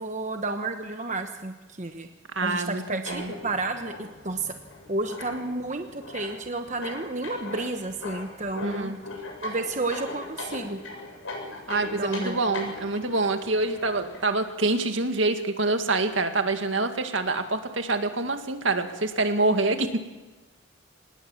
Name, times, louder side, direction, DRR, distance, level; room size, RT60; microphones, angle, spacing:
voice 1, 0.0-2.1 2.4-4.5 4.9-8.9 9.4-10.8 11.9-12.6, right 2 dB, 35° right, 6 dB, 1.1 m, -31 dB
voice 2, 2.3-3.3 8.6-9.0 11.7-20.0, right 2 dB, 70° right, 6 dB, 2.1 m, -26 dB
sound 1, 3.0-14.2, left 2 dB, 85° left, 7.8 m, -40 dB
25.5 x 19.5 x 7.2 m, 1.2 s
head